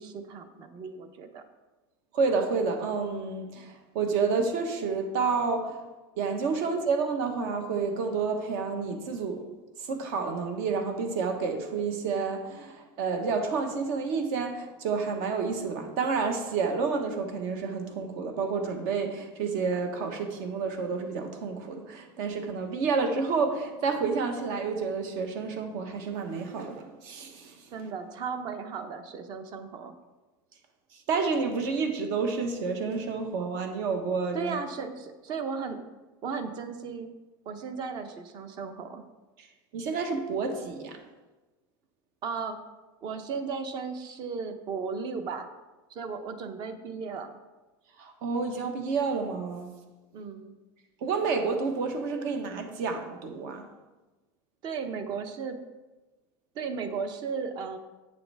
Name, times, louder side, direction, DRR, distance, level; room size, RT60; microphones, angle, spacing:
voice 1, 0.0-1.4 27.7-29.9 34.3-35.8 36.2-37.1 37.4-39.0 42.2-42.6 43.0-45.5 45.9-47.4 50.1-50.5 54.6-55.6 56.5-57.8, right 5 dB, 40° right, 8 dB, 0.8 m, -35 dB
voice 2, 2.1-5.8 6.2-9.4 9.8-27.7 31.1-34.6 39.7-41.0 48.0-49.7 51.0-53.6, right 4 dB, 60° right, 5 dB, 1.3 m, -29 dB
8.8 x 6.8 x 3.4 m, 1.1 s
supercardioid pair, 150°, 12 cm